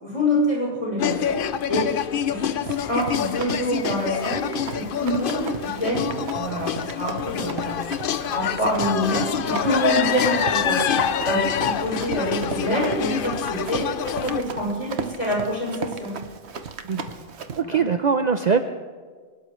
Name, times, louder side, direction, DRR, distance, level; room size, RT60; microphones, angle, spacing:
voice 1, 0.0-1.4 1.7-1.9 2.2-2.6 2.9-4.5 4.7-7.9 8.3-10.8 11.2-13.9 14.2-16.1 16.9-17.1 17.6-17.8, equal, 30° left, -4 dB, 6.8 m, -26 dB
sound 1, 1.0-14.4, left 9 dB, 60° left, 0.8 m, -26 dB
Run, 2.6-17.6, right 6 dB, 80° right, 1.2 m, -36 dB
voice 2, 17.5-18.6, right 6 dB, 50° right, 7 dB, 0.7 m, -21 dB
23.5 x 19.5 x 3.2 m, 1.5 s
omnidirectional pair, 1.1 m